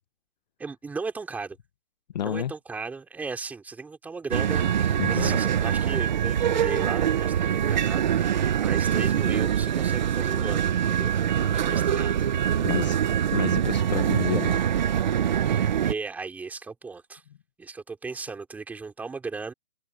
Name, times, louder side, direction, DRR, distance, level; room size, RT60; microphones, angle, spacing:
voice 1, 0.6-1.6 2.2-11.1 11.5-12.3 15.4-17.2 17.6-19.5, right 4 dB, 5° right, 3.6 m, -36 dB
voice 2, 2.1-2.5 5.0-5.4 12.6-13.0 13.3-14.6, left 10 dB, 45° left, 1.3 m, -30 dB
sound 1, 4.3-15.9, right 9 dB, 50° right, 1.4 m, -24 dB
hypercardioid pair, 160°, 30 cm